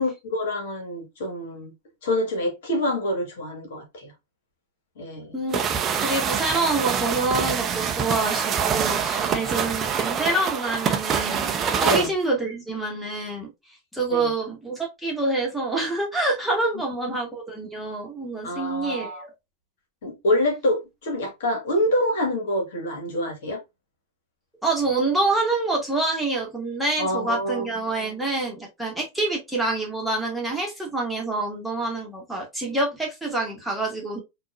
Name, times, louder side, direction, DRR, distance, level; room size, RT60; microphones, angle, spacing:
voice 1, 0.0-1.7 2.0-4.1 5.0-5.3 11.8-12.1 14.1-14.3 17.1-17.2 18.4-19.2 20.0-23.6 27.0-27.6, left 1 dB, 55° left, 1.5 m, -26 dB
sound 1, 5.5-12.1, right 7 dB, 25° right, 0.6 m, -25 dB
voice 2, 6.0-11.5 11.8-13.5 13.9-19.3 24.6-34.2, right 2 dB, ahead, 1.5 m, -26 dB
6.0 x 2.5 x 2.4 m
figure-of-eight pair, 90°, 0 cm